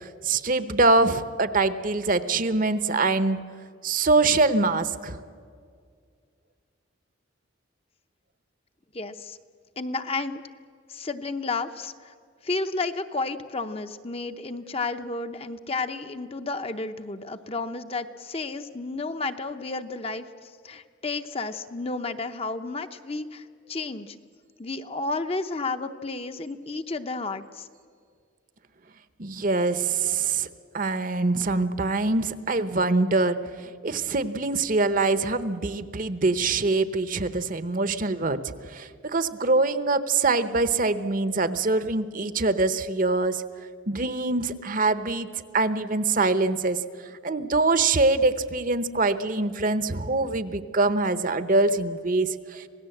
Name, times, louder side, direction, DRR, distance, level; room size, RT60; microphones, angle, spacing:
voice 1, 0.0-3.4 3.8-5.2 29.2-30.5 30.7-43.4 43.9-52.7, right 3 dB, 40° right, 13 dB, 0.9 m, -24 dB
voice 2, 8.9-9.4 9.8-10.4 10.9-12.1 12.4-24.2 24.6-27.7, left 3 dB, 30° left, 8 dB, 0.7 m, -32 dB
26.5 x 17.5 x 7.8 m, 2.1 s
head